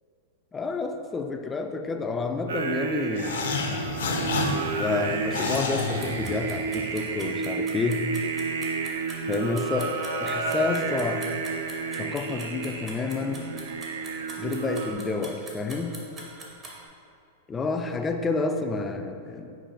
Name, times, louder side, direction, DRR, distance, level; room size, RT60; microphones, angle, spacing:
voice 1, 0.5-3.4 4.8-8.1 9.2-11.3 12.0-13.5 14.4-16.0 17.5-19.5, left 3 dB, 20° left, 5 dB, 0.3 m, -29 dB
Singing, 2.5-14.9, right 5 dB, 70° right, 0.4 m, -31 dB
sound 1, 3.1-6.9, left 3 dB, 75° left, 0.5 m, -30 dB
sound 2, 5.5-16.8, right 2 dB, 30° right, 0.8 m, -43 dB
5.1 x 2.4 x 3.9 m, 2.6 s
hypercardioid pair, 105°, 0 cm